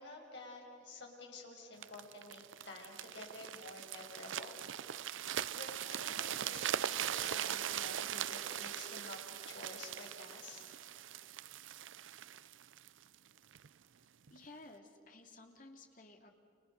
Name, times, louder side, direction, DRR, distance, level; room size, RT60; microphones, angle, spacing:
voice 1, 0.0-4.5 5.5-10.7, left 2 dB, 70° left, 0 dB, 6.2 m, -51 dB
sound 1, 1.8-13.7 14.3-14.4, right 10 dB, 85° right, 0.6 m, -41 dB
voice 2, 14.3-16.4, left 2 dB, 45° left, 3 dB, 2.6 m, -55 dB
29.5 x 28.5 x 6.7 m, 2.5 s
head